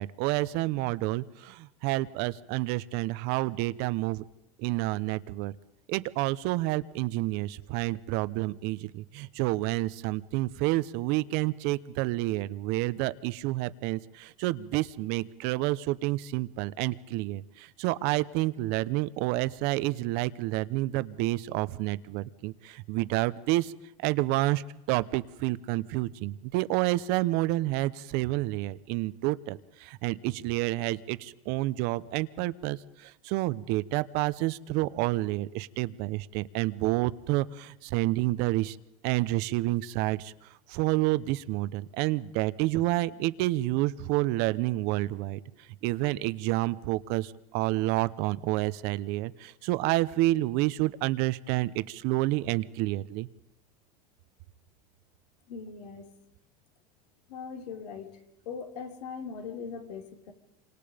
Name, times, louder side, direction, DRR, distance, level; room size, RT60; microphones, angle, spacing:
voice 1, 0.0-4.2 4.6-5.5 5.9-23.7 24.0-24.6 24.9-38.8 39.0-40.3 40.7-45.4 45.8-53.3, right 18 dB, 55° right, 15 dB, 1.0 m, -29 dB
voice 2, 55.5-56.1 57.3-58.2 58.5-60.3, left 6 dB, 80° left, 4 dB, 3.7 m, -40 dB
27.5 x 26.0 x 5.2 m, 0.89 s
supercardioid pair, 135°, 20 cm